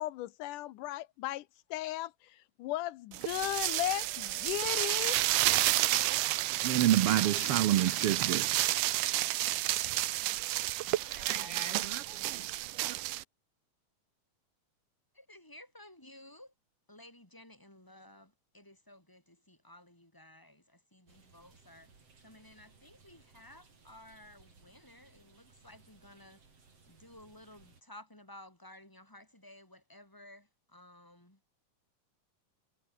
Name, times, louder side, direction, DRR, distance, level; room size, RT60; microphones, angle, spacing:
voice 1, 0.0-1.5 1.7-5.2, left 15 dB, 80° left, 2.3 m, -36 dB
sound 1, 3.1-13.2, right 16 dB, 90° right, 2.5 m, -31 dB
voice 2, 6.2-8.6 11.2-12.5 12.8-12.9, right 12 dB, 70° right, 1.4 m, -30 dB
voice 3, 11.0-12.3 12.7-12.9 15.1-16.5 16.9-21.9 22.2-26.4 26.9-31.4, left 1 dB, 5° left, 3.6 m, -55 dB
sound 2, 21.1-27.8, right 4 dB, 50° right, 5.5 m, -62 dB
omnidirectional pair, 3.6 m